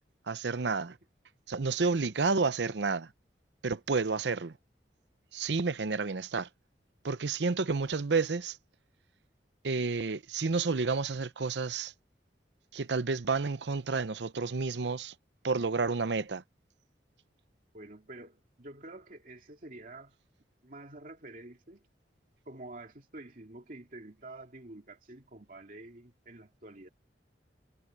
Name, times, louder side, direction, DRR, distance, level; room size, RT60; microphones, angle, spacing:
voice 1, 0.3-1.0 1.5-3.1 3.6-4.6 5.3-6.5 7.0-8.6 9.6-11.9 12.7-15.1 15.4-16.4, right 4 dB, 75° right, 0.7 m, -30 dB
voice 2, 17.7-20.2 20.6-21.9 22.5-26.9, right 2 dB, 50° right, 2.5 m, -48 dB
head